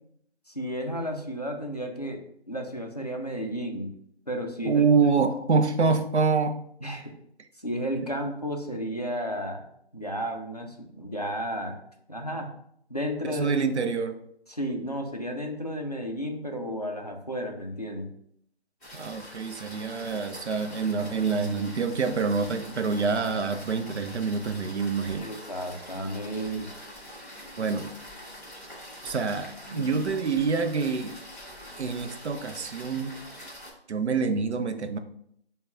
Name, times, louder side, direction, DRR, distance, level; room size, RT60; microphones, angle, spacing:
voice 1, 0.5-3.9 4.3-4.8 6.8-7.1 7.6-9.6 9.9-11.8 12.1-12.5 12.9-13.5 14.5-18.1 25.1-26.7 29.7-29.9, equal, 40° left, 2 dB, 0.4 m, -33 dB
voice 2, 4.6-6.6 13.2-14.2 18.9-25.3 27.6-27.9 29.0-31.2 31.8-33.2 33.9-35.0, right 5 dB, 90° right, 8 dB, 0.6 m, -26 dB
sound 1, 18.8-33.7, equal, ahead, 0.7 m, -44 dB
5.1 x 2.2 x 2.3 m, 0.69 s
figure-of-eight pair, 175°, 33 cm